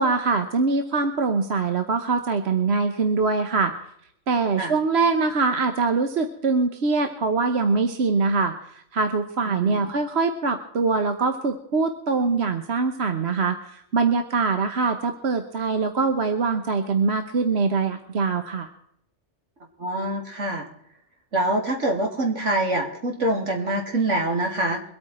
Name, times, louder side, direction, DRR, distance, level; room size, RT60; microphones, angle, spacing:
voice 1, 0.0-3.7 4.3-18.7, right 4 dB, 60° right, 7 dB, 1.3 m, -23 dB
voice 2, 9.5-9.9 19.8-20.7 21.3-24.8, right 1 dB, 75° right, 1 dB, 3.2 m, -25 dB
23.5 x 8.9 x 4.4 m, 0.71 s
omnidirectional pair, 1.3 m